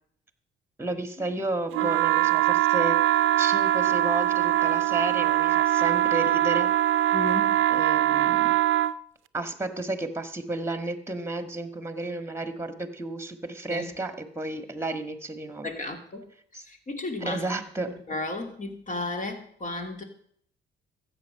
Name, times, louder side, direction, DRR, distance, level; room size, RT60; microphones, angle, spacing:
voice 1, 0.8-6.7 7.7-8.5 9.3-15.7 16.5-16.6 17.2-17.9, right 2 dB, 10° right, 9 dB, 1.6 m, -32 dB
sound 1, 1.7-8.9, right 13 dB, 85° right, 0.5 m, -22 dB
voice 2, 7.1-7.6 13.7-13.9 15.6-16.3 16.6-17.5 17.8-20.0, left 2 dB, 40° left, 5 dB, 2.6 m, -34 dB
13.5 x 8.2 x 6.6 m, 0.63 s
cardioid pair, 90°, 20 cm